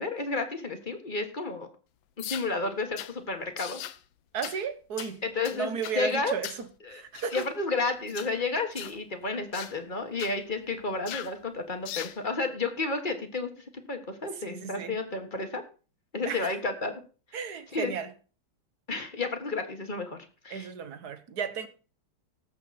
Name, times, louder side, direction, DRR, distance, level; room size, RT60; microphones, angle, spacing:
voice 1, 0.0-1.7 2.2-3.8 5.2-6.3 6.8-7.0 7.3-13.5 13.9-15.6 16.1-16.9 17.7-17.9 18.9-20.2 20.4-20.7, left 3 dB, 25° left, 1.6 m, -31 dB
sound 1, 2.2-2.5 3.0-3.1 3.6-4.0 4.4-4.6 5.0-5.1 5.5-6.0 6.4-6.7 7.2-7.5 8.1-8.3 8.8-9.0 9.5-9.8 10.2-10.4 11.1-11.4 11.9-12.2, left 11 dB, 70° left, 1.5 m, -39 dB
voice 2, 4.3-5.2 5.5-6.5 6.9-7.5 14.4-15.0 16.2-16.5 17.3-18.1 20.5-21.7, right 6 dB, 50° right, 1.5 m, -34 dB
18.0 x 8.1 x 4.3 m
omnidirectional pair, 2.4 m